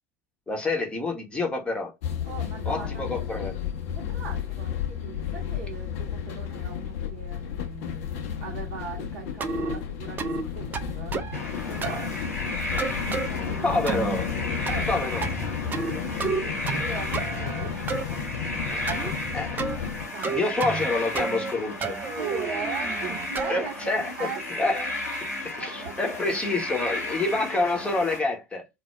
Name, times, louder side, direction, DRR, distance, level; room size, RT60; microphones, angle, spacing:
voice 1, 0.5-1.9 2.7-3.5 13.6-14.3 14.9-15.4 19.3-19.6 20.3-22.0 23.5-24.1 24.5-24.8 25.4-28.7, left 2 dB, 10° left, 0.7 m, -27 dB
sound 1, 2.0-20.1, left 8 dB, 55° left, 0.6 m, -32 dB
voice 2, 2.2-3.4 3.9-8.1 8.4-11.2 11.7-14.1 14.7-14.9 15.8-18.9 20.1-21.0 22.2-25.0 25.6-26.4 26.7-26.9, right 6 dB, 50° right, 0.7 m, -40 dB
sound 2, 9.4-9.8 10.2-10.4 10.7-11.4 11.8-12.1 12.8-13.3 13.9-14.2 14.7-15.0 15.2-15.9 16.2-16.9 17.1-18.0 18.9-19.1 19.6-19.8 20.2-20.9 21.2-21.5 21.8-23.6, right 4 dB, 20° right, 0.4 m, -30 dB
sound 3, 11.3-28.2, left 1 dB, 85° left, 0.9 m, -34 dB
2.2 x 2.0 x 2.9 m
figure-of-eight pair, 75°, 9 cm